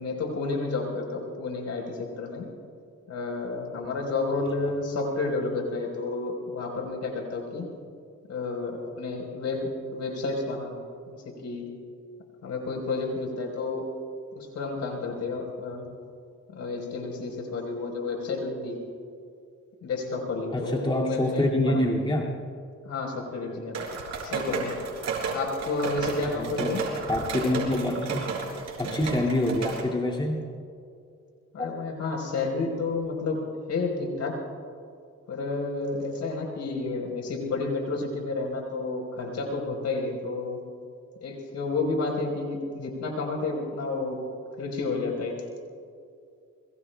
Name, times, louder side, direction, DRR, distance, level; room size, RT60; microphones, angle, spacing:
voice 1, 0.0-2.5 3.1-7.7 8.3-10.8 11.1-11.7 12.4-13.8 14.3-15.8 16.5-18.8 19.8-21.8 22.8-23.8 24.2-24.7 25.3-26.8 31.5-33.4 33.7-34.3 35.3-40.6 41.2-44.2 44.6-45.3, left 3 dB, 65° left, 1 dB, 4.2 m, -31 dB
voice 2, 20.5-22.3 26.2-26.8 27.1-28.3 28.8-30.5 31.6-31.7, left 1 dB, 15° left, -2 dB, 2.3 m, -26 dB
sound 1, 23.7-29.8, right 4 dB, 60° right, 4.5 m, -32 dB
28.5 x 22.0 x 2.3 m, 2.4 s
cardioid pair, 90°, 30 cm